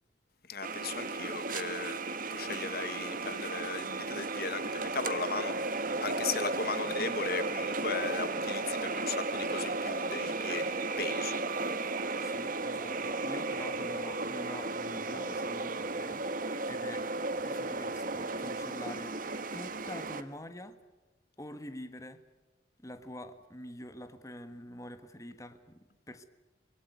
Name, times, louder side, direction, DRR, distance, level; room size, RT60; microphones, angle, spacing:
voice 1, 0.5-2.0 2.3-11.3, left 4 dB, 55° left, 1.2 m, -37 dB
sound 1, 0.6-20.2, right 3 dB, 50° right, 1.4 m, -34 dB
voice 2, 12.2-17.1 17.4-19.2 19.5-20.8 21.4-22.2 22.8-26.2, left 1 dB, 20° left, 1.4 m, -46 dB
24.5 x 22.0 x 9.5 m
head